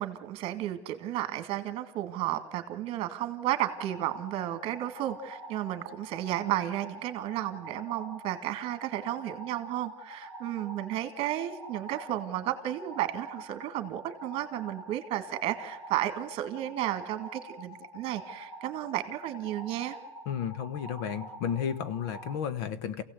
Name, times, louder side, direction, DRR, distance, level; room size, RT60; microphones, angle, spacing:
voice 1, 0.0-20.0, right 13 dB, 40° right, 9 dB, 2.1 m, -33 dB
sound 1, 3.7-22.4, equal, 10° left, 2.2 m, -46 dB
voice 2, 20.3-23.0, left 8 dB, 60° left, 14 dB, 1.3 m, -33 dB
28.5 x 16.5 x 8.1 m, 1.1 s
supercardioid pair, 160°, 15 cm